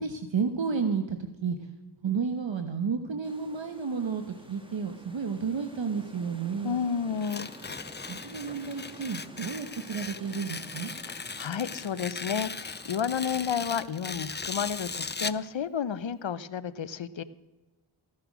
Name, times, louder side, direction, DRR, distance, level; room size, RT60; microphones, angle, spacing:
voice 1, 0.0-1.6 2.0-4.2 4.5-6.8 8.1-10.9, right 5 dB, 65° right, 7 dB, 1.2 m, -31 dB
sound 1, 3.2-13.5, right 1 dB, 10° right, 2.2 m, -50 dB
voice 2, 6.6-7.5 11.1-17.2, left 7 dB, 65° left, 16 dB, 0.8 m, -31 dB
Tearing, 7.1-15.5, left 4 dB, 20° left, 0.5 m, -38 dB
15.5 x 10.5 x 6.1 m, 1.1 s
cardioid pair, 50°, 49 cm